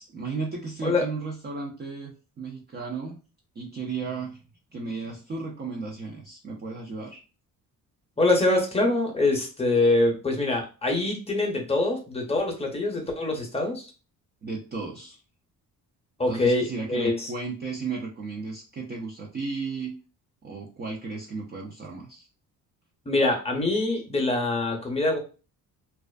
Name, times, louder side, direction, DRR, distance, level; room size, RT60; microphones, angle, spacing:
voice 1, 0.0-3.2 3.6-4.4 4.7-7.2 14.4-15.2 16.3-19.9 20.4-22.3, right 4 dB, 30° right, -2 dB, 0.4 m, -34 dB
voice 2, 8.2-13.9 16.2-17.3 23.1-25.2, left 2 dB, 15° left, 1 dB, 0.6 m, -24 dB
2.4 x 2.4 x 2.2 m, 0.33 s
cardioid pair, 135°, 36 cm